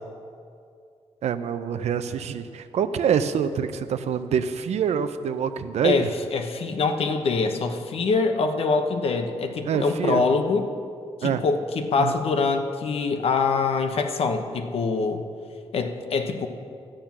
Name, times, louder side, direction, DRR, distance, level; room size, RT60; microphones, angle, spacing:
voice 1, 1.2-6.1 9.6-10.2 11.2-11.4 12.0-12.1, right 7 dB, 80° right, 10 dB, 0.6 m, -25 dB
voice 2, 5.8-10.7 11.2-15.2 15.7-16.5, left 4 dB, 60° left, 6 dB, 1.0 m, -24 dB
12.5 x 8.9 x 5.9 m, 2.3 s
wide cardioid pair, 135°, 11 cm